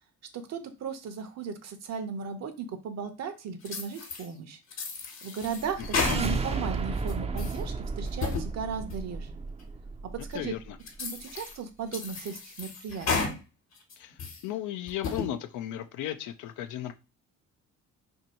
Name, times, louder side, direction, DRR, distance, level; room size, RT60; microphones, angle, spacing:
voice 1, 0.3-4.6 5.2-9.3 10.3-10.5 11.0-13.3, right 6 dB, 60° right, 0.7 m, -36 dB
sound 1, 3.7-4.3 4.7-6.6 7.0-7.6 8.1-8.5 8.9-9.0 9.6-9.7 10.3-10.4 10.9-11.6 11.9-13.4 13.8-14.4 14.9-15.3, left 4 dB, 60° left, 1.1 m, -33 dB
sound 2, 5.6-10.7, right 4 dB, 20° right, 0.4 m, -33 dB
voice 2, 10.3-10.8 14.0-16.9, left 12 dB, 85° left, 0.5 m, -35 dB
2.8 x 2.6 x 4.1 m
cardioid pair, 90°, 30 cm